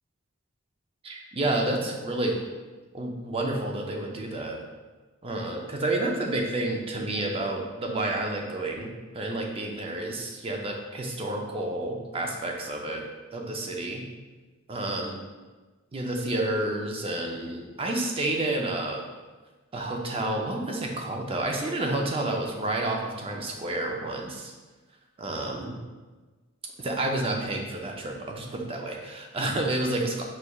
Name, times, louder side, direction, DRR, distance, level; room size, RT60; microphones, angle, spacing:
voice 1, 1.0-2.4 2.9-4.6 5.2-13.0 13.3-14.0 14.7-15.2 15.9-19.1 19.7-24.5 25.2-25.8 26.8-30.2, right 2 dB, 25° right, 1 dB, 0.5 m, -30 dB
5.6 x 3.2 x 2.3 m, 1.3 s
head